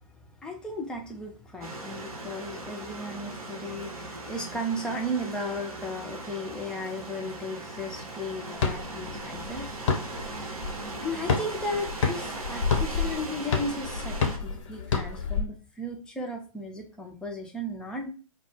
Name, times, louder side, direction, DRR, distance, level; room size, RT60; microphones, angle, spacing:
voice 1, 0.0-10.0 11.0-18.1, left 1 dB, 5° left, 0 dB, 0.3 m, -35 dB
sound 1, 1.6-14.4, right 2 dB, 80° right, 0.7 m, -39 dB
sound 2, 8.6-15.4, left 6 dB, 55° left, 0.5 m, -30 dB
2.1 x 2.0 x 3.1 m, 0.35 s
figure-of-eight pair, 115°, 19 cm